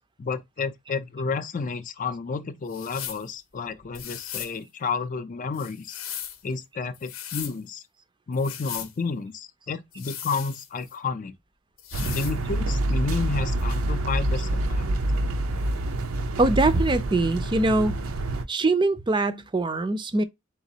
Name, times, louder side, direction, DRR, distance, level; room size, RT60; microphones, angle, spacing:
voice 1, 0.2-5.9 6.4-7.8 8.3-11.3 12.0-14.9, left 4 dB, 40° left, 0.4 m, -31 dB
sound 1, 2.7-3.3 3.9-4.6 5.5-6.4 6.9-7.6 8.3-8.9 9.9-10.9 11.8-12.4, left 10 dB, 75° left, 0.7 m, -37 dB
sound 2, 11.9-18.4, right 1 dB, 90° right, 0.6 m, -27 dB
voice 2, 16.4-18.0 18.5-20.2, right 2 dB, 20° right, 0.4 m, -22 dB
4.0 x 3.6 x 2.7 m
head